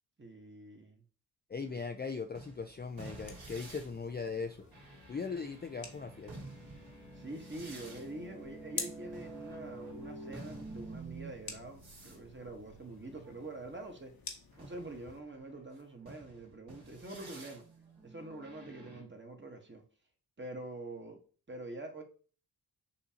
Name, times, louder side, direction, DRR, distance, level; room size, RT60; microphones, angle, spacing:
voice 1, 0.2-1.0 1.7-1.8 7.1-14.1 14.6-17.6 18.0-19.8 20.4-21.2 21.5-22.0, right 2 dB, 25° right, 1.4 m, -45 dB
voice 2, 1.5-4.7 5.1-6.3, left 5 dB, 25° left, 0.5 m, -39 dB
sound 1, 1.6-13.8 14.5-19.0, right 2 dB, 55° right, 2.2 m, -50 dB
sound 2, 2.8-15.2, left 5 dB, 55° left, 1.1 m, -50 dB
7.0 x 2.6 x 2.8 m
supercardioid pair, 40°, 43 cm